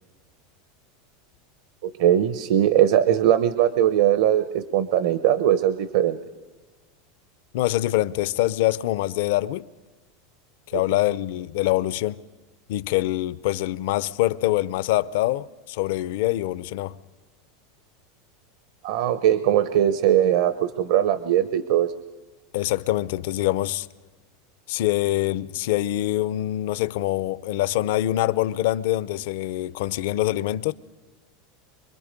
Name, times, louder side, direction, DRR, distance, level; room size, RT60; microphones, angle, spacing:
voice 1, 1.8-6.2 10.7-10.8 18.8-21.9, right 11 dB, 65° right, 0.8 m, -20 dB
voice 2, 7.5-9.7 10.7-12.2 12.7-17.0 22.5-23.9 24.7-30.7, left 15 dB, 65° left, 0.5 m, -24 dB
25.5 x 22.0 x 5.2 m
supercardioid pair, 155°, 0 cm